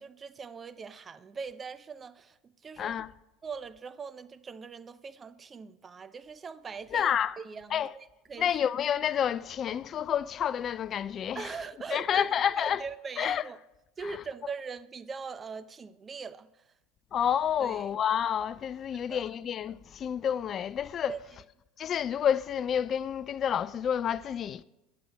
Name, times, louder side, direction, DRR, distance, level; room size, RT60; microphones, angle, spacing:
voice 1, 0.0-3.0 3.4-8.5 11.3-12.3 12.6-13.6 14.0-16.8 17.6-17.9 18.9-19.2 21.1-21.2, right 5 dB, 30° right, 0.6 m, -41 dB
voice 2, 2.8-3.1 6.9-7.4 7.7-7.9 8.4-11.5 11.9-12.8 13.2-13.4 14.1-14.2 17.1-21.2 21.8-24.6, left 9 dB, 40° left, 0.3 m, -29 dB
18.5 x 10.5 x 2.3 m
hypercardioid pair, 80°, 0 cm